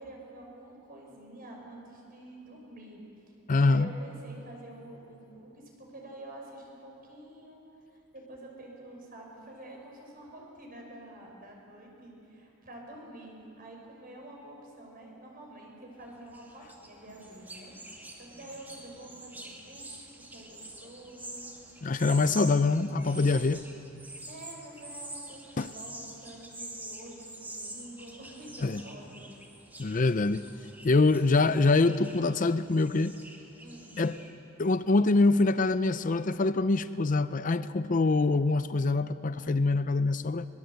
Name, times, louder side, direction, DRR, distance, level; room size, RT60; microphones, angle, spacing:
voice 1, 0.0-3.0 3.5-7.6 7.9-20.1 20.3-21.5 24.3-29.3 33.6-34.0, right 1 dB, 45° right, 0 dB, 5.6 m, -48 dB
voice 2, 3.5-3.9 21.8-23.6 25.6-25.7 28.6-28.8 29.8-30.5 30.8-33.1 34.0-34.2 34.6-40.5, left 3 dB, 40° left, 13 dB, 0.5 m, -25 dB
sound 1, 16.0-34.3, right 1 dB, 10° right, 2.3 m, -46 dB
23.0 x 22.0 x 8.1 m, 2.8 s
head